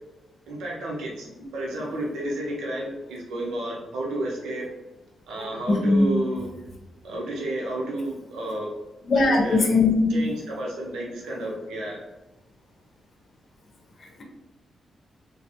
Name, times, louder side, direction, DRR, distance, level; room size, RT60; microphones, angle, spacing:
voice 1, 0.5-4.7 5.3-6.4 7.0-8.7 9.1-9.7 10.1-12.0, right 1 dB, 85° right, -2 dB, 1.1 m, -31 dB
voice 2, 5.7-6.1 9.1-10.1 14.0-14.2, left 3 dB, 50° left, 1 dB, 1.1 m, -20 dB
3.1 x 3.1 x 3.0 m, 1.0 s
cardioid pair, 60°, 0 cm